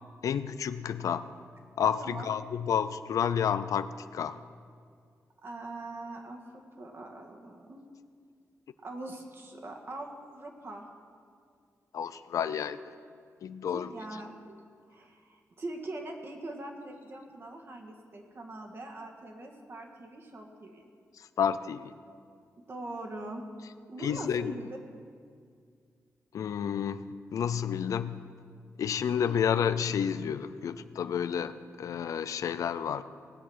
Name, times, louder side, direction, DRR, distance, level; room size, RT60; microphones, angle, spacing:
voice 1, 0.2-1.2 1.8-4.4 11.9-12.8 13.4-13.9 21.2-21.9 24.0-24.6 26.3-27.1 27.3-28.2 28.8-33.0, left 8 dB, 75° left, 12 dB, 0.5 m, -30 dB
voice 2, 5.4-7.8 8.8-10.8 13.7-14.6 14.9-20.9 22.7-23.4 23.9-24.7, right 2 dB, 45° right, 2 dB, 1.7 m, -42 dB
18.0 x 7.9 x 6.3 m, 2.2 s
wide cardioid pair, 120°, 6 cm